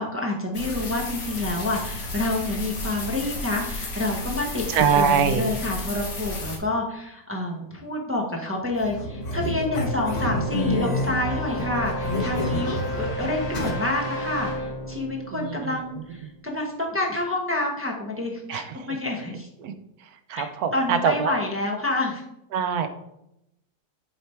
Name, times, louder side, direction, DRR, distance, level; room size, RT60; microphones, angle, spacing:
voice 1, 0.0-19.5 20.3-20.5 20.7-22.2, left 2 dB, 15° right, -1 dB, 0.5 m, -28 dB
sound 1, 0.5-6.6, left 2 dB, 55° left, 1.6 m, -33 dB
voice 2, 4.7-5.4 18.5-18.6 19.6-19.7 20.3-21.3 22.5-22.9, right 6 dB, 70° right, 9 dB, 1.0 m, -22 dB
sound 2, 8.7-13.7, left 1 dB, 75° left, 0.3 m, -29 dB
sound 3, 8.7-16.5, right 1 dB, 40° left, 2.9 m, -33 dB
7.3 x 3.4 x 4.3 m, 0.81 s
omnidirectional pair, 1.9 m